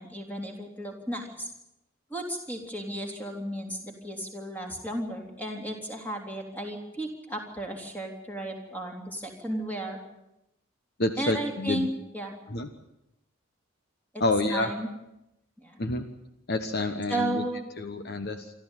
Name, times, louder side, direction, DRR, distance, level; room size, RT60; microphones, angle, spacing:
voice 1, 0.0-1.5 2.1-10.0 11.2-12.4 14.1-14.2 14.5-14.9 15.6-15.8 17.1-17.7, right 1 dB, 10° left, 1 dB, 3.6 m, -34 dB
voice 2, 11.0-11.9 12.5-12.7 14.2-14.7 15.8-16.0 16.5-17.4 17.8-18.5, left 2 dB, 50° left, 7 dB, 1.3 m, -28 dB
27.0 x 13.5 x 9.2 m, 0.85 s
head